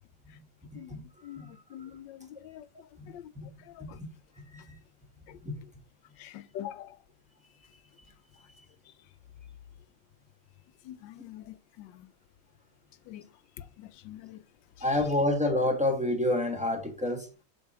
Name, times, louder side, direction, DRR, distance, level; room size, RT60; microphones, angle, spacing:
voice 1, 0.7-2.7 3.1-3.3 3.6-4.0 5.3-5.4 6.2-7.0 8.9-9.0 10.8-12.1 13.1-13.3 13.6-14.4, left 11 dB, 90° left, 1.3 m, -45 dB
voice 2, 14.8-17.3, left 1 dB, 5° right, 1.2 m, -27 dB
7.0 x 3.9 x 4.2 m
omnidirectional pair, 1.9 m